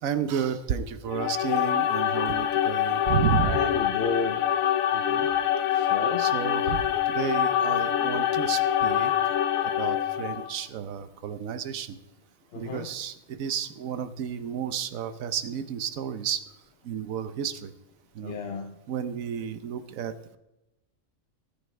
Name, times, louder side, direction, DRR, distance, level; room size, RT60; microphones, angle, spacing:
voice 1, 0.0-3.7 4.9-5.3 6.2-9.1 9.6-12.0 12.5-16.5 16.8-17.7 18.1-18.4 18.9-20.4, right 8 dB, 80° right, 11 dB, 1.2 m, -32 dB
sound 1, 1.1-10.6, left 10 dB, 85° left, 1.1 m, -25 dB
voice 2, 3.4-4.4 5.7-6.2 12.5-12.9 18.2-18.7, left 4 dB, 50° left, 4 dB, 1.0 m, -32 dB
18.5 x 10.0 x 3.3 m, 0.93 s
omnidirectional pair, 1.4 m